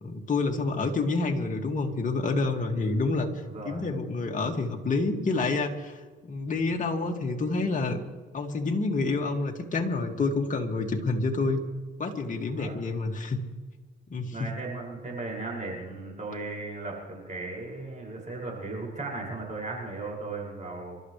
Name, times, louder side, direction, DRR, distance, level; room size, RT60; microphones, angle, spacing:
voice 1, 0.0-3.3 3.6-6.0 6.2-8.0 8.3-11.6 12.0-13.4 14.1-14.3, left 3 dB, 40° left, 1 dB, 2.4 m, -28 dB
voice 2, 3.4-3.8 12.4-12.8 14.3-21.0, right 3 dB, 40° right, -2 dB, 6.6 m, -36 dB
28.5 x 13.0 x 3.4 m, 1.3 s
cardioid pair, 90°, 20 cm